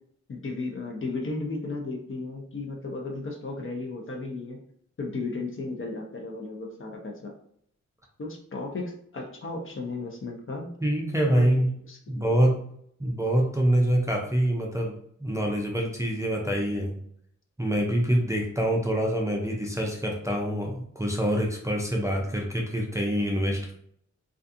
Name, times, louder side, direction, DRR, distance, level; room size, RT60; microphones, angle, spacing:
voice 1, 0.3-4.6 5.0-7.3 8.2-10.7 11.3-11.5 11.9-12.4, left 3 dB, 45° left, 1 dB, 0.6 m, -34 dB
voice 2, 10.8-11.7 12.1-12.6 13.0-14.9 15.2-17.0 17.6-23.7, equal, 10° right, -1 dB, 0.5 m, -25 dB
2.5 x 2.3 x 2.6 m, 0.67 s
cardioid pair, 70°, 29 cm